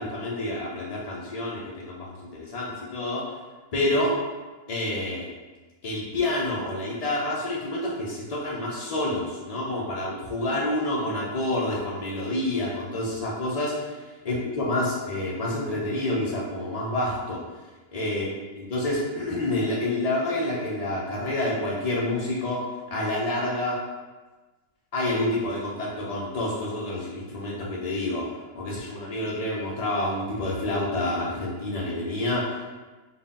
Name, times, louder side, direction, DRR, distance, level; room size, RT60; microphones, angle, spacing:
voice 1, 0.0-3.2 3.7-4.1 4.7-5.3 5.8-17.4 17.9-18.3 18.6-22.6 22.9-23.8 24.9-28.2 28.5-32.6, left 1 dB, 75° left, -5 dB, 0.3 m, -28 dB
3.8 x 2.2 x 3.7 m, 1.2 s
omnidirectional pair, 1.6 m